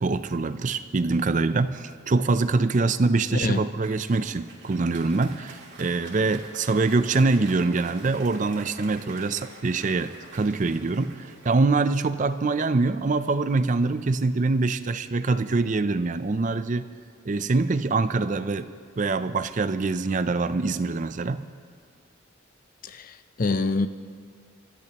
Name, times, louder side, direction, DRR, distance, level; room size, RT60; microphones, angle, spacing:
voice 1, 0.0-16.8 17.3-18.7 19.0-21.5, right 3 dB, 40° right, 12 dB, 0.5 m, -24 dB
voice 2, 3.3-3.6 22.8-23.9, left 3 dB, 45° left, 11 dB, 0.5 m, -26 dB
Applause, 3.5-12.9, right 3 dB, 55° right, 2.7 m, -47 dB
25.5 x 14.0 x 2.9 m, 2.2 s
head